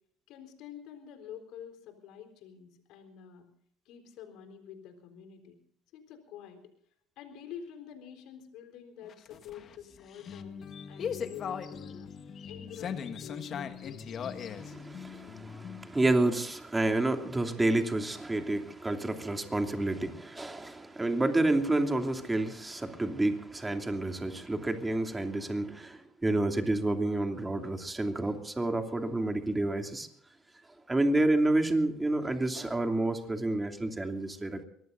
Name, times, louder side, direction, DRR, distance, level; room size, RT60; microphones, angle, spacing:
voice 1, 0.3-3.5 3.9-5.6 5.9-6.7 7.2-12.1 12.5-14.1, left 8 dB, 70° left, 6 dB, 4.0 m, -48 dB
sound 1, 9.0-15.9, left 7 dB, 50° left, 1.6 m, -39 dB
voice 2, 14.6-30.1 30.9-34.6, right 2 dB, 15° right, 5 dB, 2.8 m, -29 dB
24.0 x 20.0 x 2.6 m, 0.65 s
hypercardioid pair, 65°, 0 cm